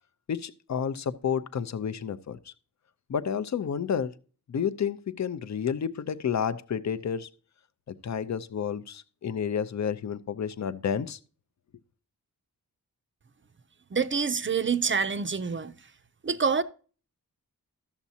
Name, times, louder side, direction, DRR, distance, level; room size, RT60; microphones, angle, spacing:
voice 1, 0.3-2.5 3.1-4.1 4.5-7.3 7.9-11.2, left 7 dB, 50° left, 0.6 m, -30 dB
voice 2, 13.9-15.7 16.2-16.6, right 5 dB, 35° right, 0.5 m, -26 dB
13.0 x 7.1 x 2.8 m
wide cardioid pair, 120°, 36 cm